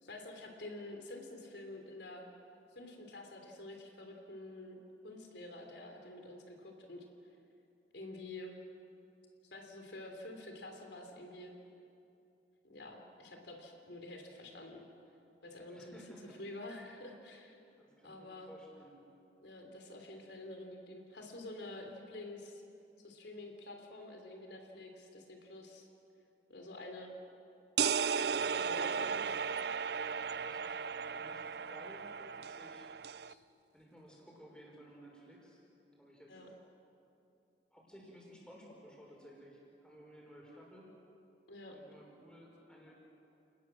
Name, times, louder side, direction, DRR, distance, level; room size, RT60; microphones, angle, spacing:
voice 1, 0.0-2.2 2.7-4.8 5.0-7.0 7.9-8.6 9.4-11.5 12.6-14.9 15.4-16.0 16.4-17.6 18.0-18.5 19.4-22.6 23.0-25.9 26.5-27.1 28.4-28.9 29.2-29.3 33.2-33.4 36.3-36.5 41.5-41.7, left 2 dB, 80° left, 3 dB, 3.4 m, -48 dB
voice 2, 15.7-16.4 17.8-18.9 28.4-29.2 30.3-31.4 31.7-32.9 33.7-35.6 36.0-36.4 37.7-40.9 41.7-42.9, equal, 5° left, -2 dB, 5.7 m, -56 dB
sound 1, 27.8-33.3, right 6 dB, 65° right, 0.5 m, -35 dB
30.0 x 20.0 x 7.6 m, 2.8 s
head